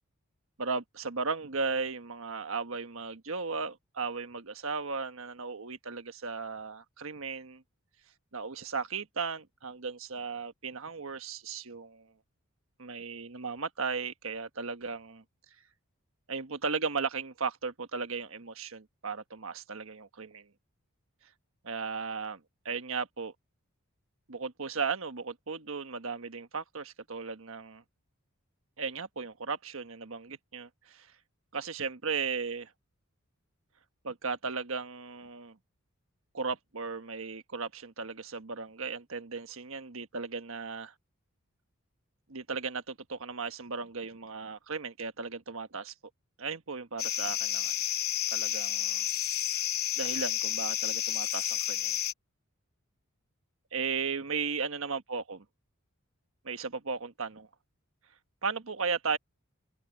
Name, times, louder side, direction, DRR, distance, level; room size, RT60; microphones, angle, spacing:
voice 1, 0.6-7.6 8.3-12.1 12.8-15.2 16.3-20.5 21.6-22.4 22.6-23.3 24.3-27.8 28.8-31.1 31.5-32.7 34.0-35.6 36.3-40.9 42.3-45.9 46.4-47.7 48.3-49.1 49.5-49.6 50.0-52.0 53.7-55.4 56.4-57.5 58.4-59.2, right 5 dB, 65° right, 1.4 m, -36 dB
sound 1, 47.0-52.1, left 12 dB, 45° left, 0.9 m, -31 dB
head